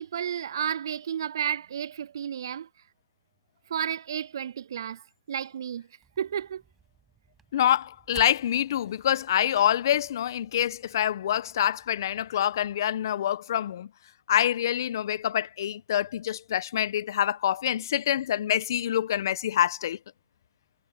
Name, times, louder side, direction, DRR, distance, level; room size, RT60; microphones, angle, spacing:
voice 1, 0.0-2.7 3.7-5.9 6.2-6.6, right 9 dB, 70° right, 0.3 m, -32 dB
sound 1, 6.0-12.8, right 7 dB, 15° right, 6.1 m, -55 dB
voice 2, 7.5-13.9 14.3-20.0, left 11 dB, 60° left, 1.1 m, -26 dB
hypercardioid pair, 125°, 2 cm